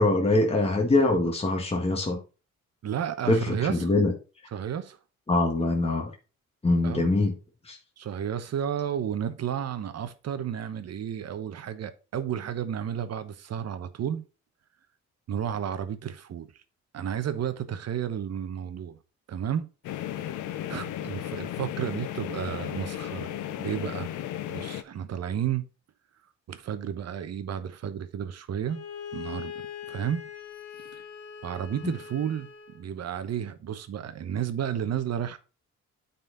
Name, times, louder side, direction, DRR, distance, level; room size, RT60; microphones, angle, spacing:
voice 1, 0.0-2.2 3.3-4.1 5.3-6.1 6.6-7.3 7.6-7.8 31.8-31.9, left 2 dB, 20° left, 1.6 m, -23 dB
voice 2, 2.8-3.9 4.5-5.0 6.8-7.1 8.0-14.2 15.3-16.5 16.9-19.0 19.3-19.7 20.7-23.3 23.6-24.1 24.5-25.7 26.5-28.8 29.1-30.3 30.8-31.0 31.4-32.5 32.7-35.4, right 9 dB, 55° right, 1.1 m, -32 dB
sound 1, 19.8-24.8, left 12 dB, 85° left, 0.8 m, -35 dB
Bowed string instrument, 28.7-32.9, left 8 dB, 60° left, 2.2 m, -41 dB
9.3 x 4.3 x 4.0 m
cardioid pair, 90°, 30 cm